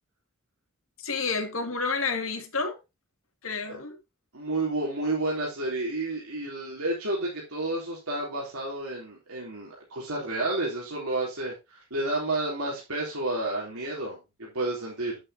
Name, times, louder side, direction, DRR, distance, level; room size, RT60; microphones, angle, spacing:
voice 1, 1.0-2.8 3.4-4.0, left 4 dB, 70° left, 2.3 m, -30 dB
voice 2, 4.3-15.2, right 2 dB, 90° right, 3.6 m, -31 dB
9.1 x 8.8 x 2.8 m
head